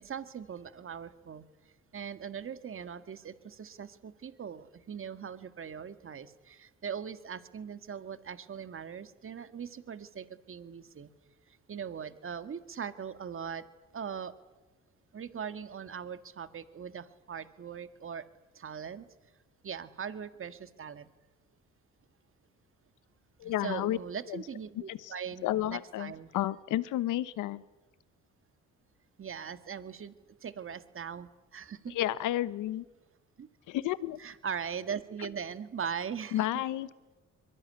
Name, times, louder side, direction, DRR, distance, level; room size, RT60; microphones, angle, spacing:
voice 1, 0.0-1.5 1.9-11.1 11.5-13.7 13.9-14.3 15.1-18.2 18.5-19.1 19.6-21.1 23.4-26.3 29.2-30.1 30.4-31.9 33.4-33.5 34.2-36.6, right 7 dB, 45° right, 11 dB, 1.9 m, -40 dB
voice 2, 23.4-24.0 24.3-24.4 24.9-25.0 25.4-27.6 31.9-32.8 33.7-34.2 36.3-36.9, left 14 dB, 90° left, 16 dB, 1.1 m, -31 dB
24.0 x 23.0 x 9.9 m, 1.1 s
cardioid pair, 90°, 30 cm